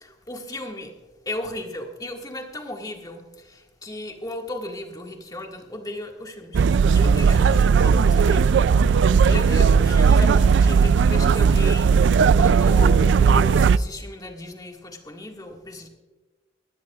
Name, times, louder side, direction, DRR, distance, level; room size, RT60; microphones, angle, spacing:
voice 1, 0.0-1.0 1.3-6.6 6.9-12.1 12.3-15.9, left 1 dB, 20° left, 2 dB, 1.8 m, -35 dB
sound 1, 6.5-13.8, right 5 dB, 70° right, 0.3 m, -17 dB
20.0 x 16.0 x 2.4 m, 1.2 s
head